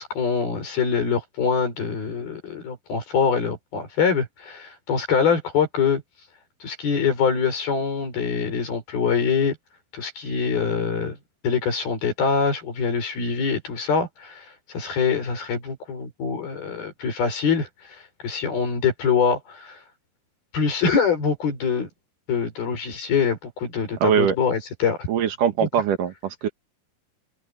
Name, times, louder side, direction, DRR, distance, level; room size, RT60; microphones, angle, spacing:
voice 1, 0.0-6.0 6.6-9.6 9.9-11.2 11.4-19.8 20.5-21.9 22.3-25.1 25.6-25.7, left 6 dB, 90° left, 8.2 m, -24 dB
voice 2, 24.0-24.4 25.1-26.5, right 8 dB, 65° right, 3.0 m, -22 dB
open air
omnidirectional pair, 4.2 m